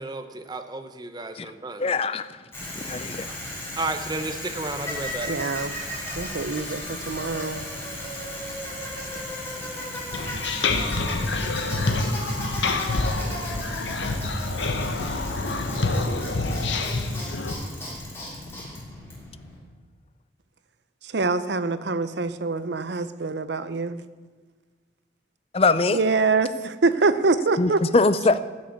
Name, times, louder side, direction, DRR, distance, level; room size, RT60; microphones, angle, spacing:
voice 1, 0.0-1.8 3.8-5.3, right 2 dB, 20° right, 8 dB, 0.8 m, -32 dB
voice 2, 1.8-2.3 2.8-3.3 25.5-26.0 27.6-28.4, left 3 dB, 30° left, 14 dB, 0.5 m, -21 dB
Bicycle, 2.5-19.6, left 1 dB, 15° left, 3.2 m, -35 dB
voice 3, 5.3-5.7 6.1-7.7 21.0-24.0 25.9-27.8, right 3 dB, 65° right, 13 dB, 0.7 m, -25 dB
sound 1, 10.1-17.5, left 3 dB, 80° left, 1.1 m, -27 dB
14.0 x 6.4 x 8.4 m, 1.4 s
head